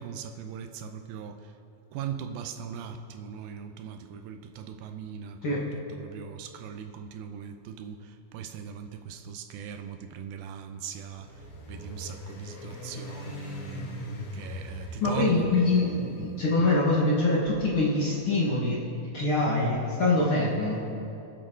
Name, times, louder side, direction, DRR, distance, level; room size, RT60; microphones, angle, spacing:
voice 1, 0.0-1.5 1.9-5.6 5.9-11.4 11.7-15.5, right 8 dB, 85° right, 7 dB, 2.6 m, -39 dB
sound 1, 11.2-16.6, left 1 dB, 60° left, 3.0 m, -41 dB
voice 2, 15.0-18.8 19.1-20.8, left 2 dB, 45° left, -5 dB, 2.0 m, -24 dB
25.0 x 8.8 x 3.9 m, 2.7 s
omnidirectional pair, 4.3 m